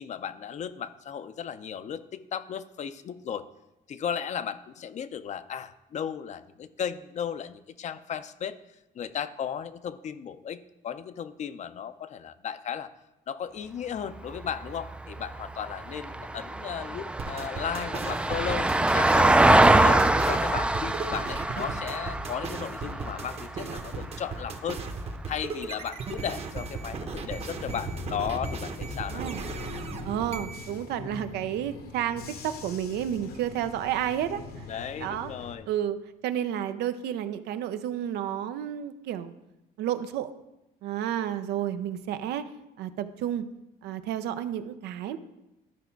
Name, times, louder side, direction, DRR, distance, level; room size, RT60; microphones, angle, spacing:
voice 1, 0.0-3.4 3.9-8.6 8.9-12.9 13.3-19.4 19.8-24.8 25.3-29.2 34.7-35.7, left 8 dB, 45° left, 13 dB, 0.5 m, -35 dB
Vehicle, 14.1-24.6 26.9-27.0, right 2 dB, 5° right, 0.3 m, -25 dB
sound 1, 17.2-30.7, right 4 dB, 35° right, 0.9 m, -36 dB
Bus / Engine, 27.6-35.6, left 4 dB, 65° left, 1.0 m, -42 dB
voice 2, 29.1-29.4 30.0-34.7 35.0-35.3 35.7-36.0 36.2-39.3 39.8-40.3 40.8-42.4 42.8-43.5 43.8-45.2, right 10 dB, 80° right, 11 dB, 0.6 m, -31 dB
12.0 x 5.1 x 4.5 m, 0.94 s
cardioid pair, 110°, 17 cm